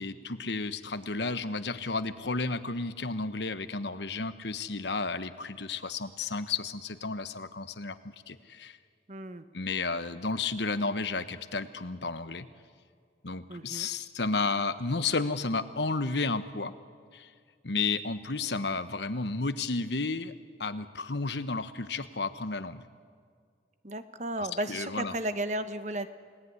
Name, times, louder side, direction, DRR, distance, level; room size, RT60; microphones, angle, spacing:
voice 1, 0.0-8.0 8.3-8.8 9.5-12.5 13.2-16.7 17.1-17.3 17.6-20.3 20.6-22.8 24.4-25.1, left 3 dB, 75° left, 11 dB, 1.2 m, -32 dB
voice 2, 9.1-9.4 13.5-13.9 23.8-26.1, right 1 dB, 40° right, 11 dB, 1.2 m, -34 dB
30.0 x 18.5 x 9.7 m, 2.1 s
head